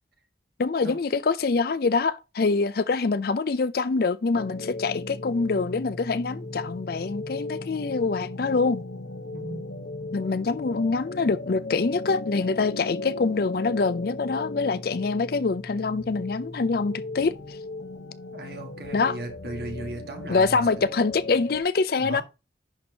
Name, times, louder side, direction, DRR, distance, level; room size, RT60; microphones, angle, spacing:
voice 1, 0.6-8.8 10.1-17.6 18.9-19.2 20.3-22.2, left 4 dB, 55° left, 0.4 m, -25 dB
sound 1, 4.3-21.6, left 2 dB, 75° left, 1.0 m, -36 dB
voice 2, 9.3-10.0 18.3-20.8 22.0-22.2, right 2 dB, 60° right, 1.6 m, -37 dB
10.5 x 4.3 x 2.8 m
head